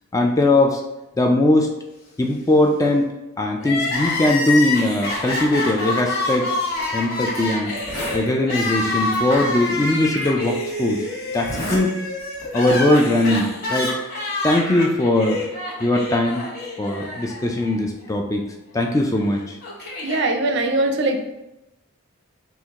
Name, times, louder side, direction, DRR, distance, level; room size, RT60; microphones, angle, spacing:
voice 1, 0.1-0.8 1.2-1.7 2.2-6.5 6.9-7.7 8.1-11.0 11.3-11.9 12.5-13.9 14.4-15.5 15.8-16.5 16.8-18.4 18.7-19.6, left 1 dB, 15° left, 2 dB, 0.3 m, -20 dB
Crying sobbing, 3.6-17.7 18.0-18.1 19.1-20.2, left 2 dB, 45° left, 1.1 m, -27 dB
Zipper (clothing), 6.7-6.8 7.3-7.4 7.7-8.3 9.1-9.2 10.2-10.3 11.3-11.8 12.2-12.5, equal, 80° left, 1.2 m, -30 dB
voice 2, 20.0-21.3, right 2 dB, 55° right, 5 dB, 0.4 m, -21 dB
4.5 x 2.1 x 3.5 m, 0.95 s
head